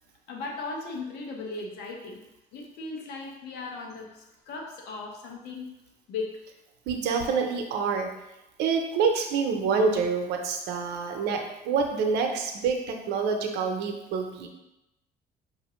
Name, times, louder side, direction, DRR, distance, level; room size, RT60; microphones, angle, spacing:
voice 1, 0.3-2.2 2.5-5.7 6.1-6.3, left 3 dB, 75° left, 0 dB, 0.9 m, -37 dB
voice 2, 6.9-8.1 8.6-14.5, right 5 dB, 85° right, 3 dB, 0.7 m, -27 dB
5.6 x 2.6 x 3.1 m, 0.92 s
cardioid pair, 110°, 17 cm